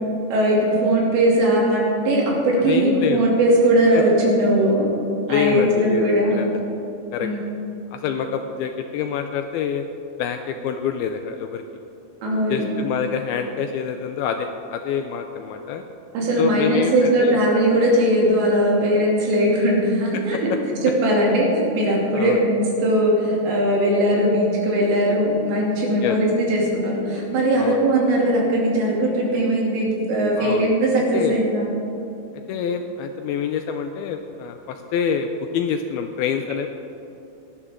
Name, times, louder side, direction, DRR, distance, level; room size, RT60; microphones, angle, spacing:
voice 1, 0.3-4.9 5.3-6.4 7.2-7.5 12.2-12.7 16.1-20.5 20.8-31.7, right 1 dB, 85° right, -3 dB, 4.9 m, -19 dB
voice 2, 2.7-3.3 5.3-6.1 6.4-6.6 7.1-7.3 7.9-9.8 10.2-11.6 12.5-15.8 16.4-17.4 20.1-20.4 22.1-22.4 26.0-26.2 27.6-27.8 30.4-30.8 31.1-31.4 32.5-36.7, left 7 dB, 85° left, 6 dB, 2.2 m, -26 dB
18.5 x 11.5 x 3.7 m, 2.8 s
omnidirectional pair, 4.9 m